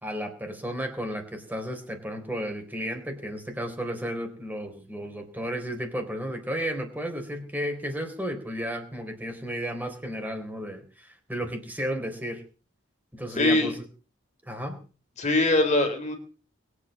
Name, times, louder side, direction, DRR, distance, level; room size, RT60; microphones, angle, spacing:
voice 1, 0.0-12.4 13.1-13.9 14.5-14.8, equal, 10° right, 4 dB, 3.6 m, -33 dB
voice 2, 13.3-13.7 15.2-16.2, left 2 dB, 35° left, 5 dB, 3.4 m, -22 dB
21.5 x 8.4 x 7.4 m, 0.39 s
head